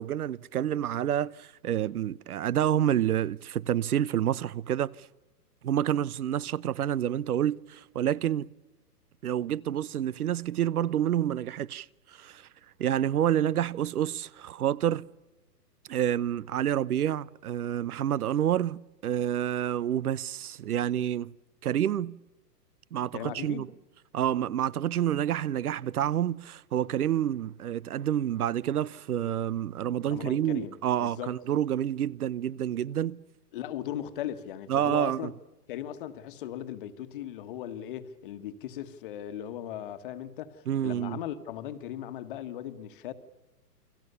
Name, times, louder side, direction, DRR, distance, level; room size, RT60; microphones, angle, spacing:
voice 1, 0.0-5.1 5.6-8.5 9.2-12.5 12.8-15.1 15.9-21.3 21.6-22.2 22.9-23.7 24.1-33.2 34.7-35.3 40.7-41.2, right 10 dB, 65° right, 0.9 m, -28 dB
voice 2, 23.1-23.7 30.1-31.4 33.5-35.3 35.7-43.1, left 11 dB, 30° left, 1.5 m, -38 dB
29.5 x 22.5 x 6.9 m
hypercardioid pair, 160°, 48 cm